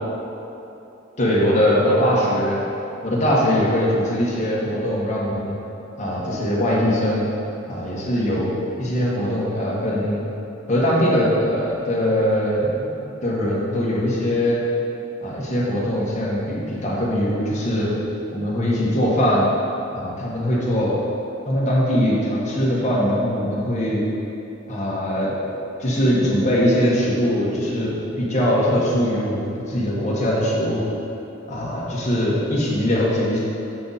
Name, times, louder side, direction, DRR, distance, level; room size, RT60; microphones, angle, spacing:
voice 1, 1.2-2.6 3.0-5.5 6.0-7.2 7.7-8.5 8.8-10.2 10.7-12.9 13.2-14.6 15.2-17.9 18.3-19.5 19.9-20.9 21.4-24.1 24.7-25.3 25.8-30.8 31.5-33.4, equal, 35° left, -6 dB, 1.5 m, -21 dB
7.0 x 5.7 x 4.1 m, 2.9 s
head